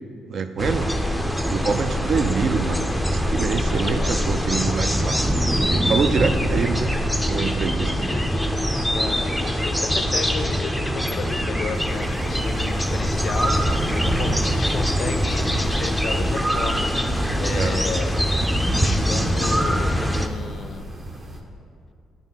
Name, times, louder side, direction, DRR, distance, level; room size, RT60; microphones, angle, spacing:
voice 1, 0.3-0.9 1.5-5.2 5.7-6.9 7.2-7.9 17.5-17.8, right 5 dB, 55° right, 10 dB, 0.4 m, -25 dB
sound 1, 0.6-20.3, equal, ahead, 0.5 m, -23 dB
voice 2, 3.6-4.2 7.8-16.9 17.4-18.2 18.7-20.9, left 6 dB, 55° left, 10 dB, 0.4 m, -33 dB
sound 2, 11.7-21.4, right 1 dB, 30° right, 0.9 m, -33 dB
9.0 x 3.6 x 5.7 m, 2.4 s
cardioid pair, 90°, 0 cm